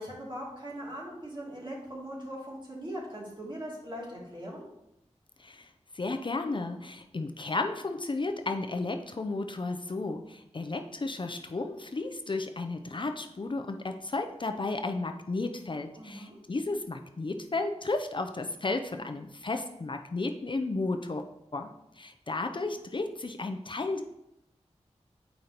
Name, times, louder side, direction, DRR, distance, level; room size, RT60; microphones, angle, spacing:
voice 1, 0.0-4.6 15.9-16.4, equal, 40° right, -5 dB, 2.6 m, -40 dB
voice 2, 5.9-21.2 21.5-21.7 22.0-24.0, left 3 dB, 45° left, 6 dB, 0.5 m, -33 dB
7.9 x 5.1 x 2.9 m, 0.85 s
wide cardioid pair, 60°, 12 cm